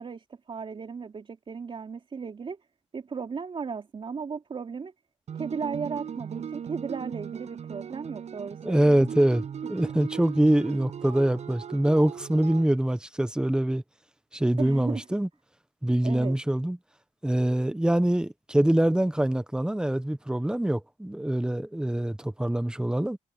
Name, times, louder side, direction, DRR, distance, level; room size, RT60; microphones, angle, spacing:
voice 1, 0.0-2.6 2.9-4.9 5.3-8.9 14.6-15.1 16.0-16.4, right 5 dB, 50° right, 4.0 m, -35 dB
sound 1, 5.3-12.7, right 8 dB, 75° right, 6.6 m, -38 dB
voice 2, 8.6-13.8 14.3-15.3 15.8-16.8 17.2-23.2, right 1 dB, 5° right, 1.2 m, -24 dB
wide cardioid pair, 110°, 12 cm